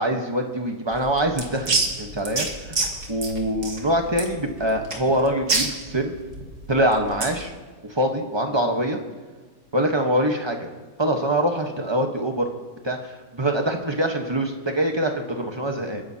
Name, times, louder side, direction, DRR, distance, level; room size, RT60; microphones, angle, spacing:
voice 1, 0.0-2.8 3.1-6.1 6.7-7.5 7.9-9.0 9.7-10.7 11.0-12.5 12.8-16.0, right 1 dB, 20° right, 3 dB, 1.1 m, -24 dB
sound 1, 0.9-7.4, right 3 dB, 50° right, 2.0 m, -28 dB
29.0 x 10.0 x 2.8 m, 1.4 s
omnidirectional pair, 1.6 m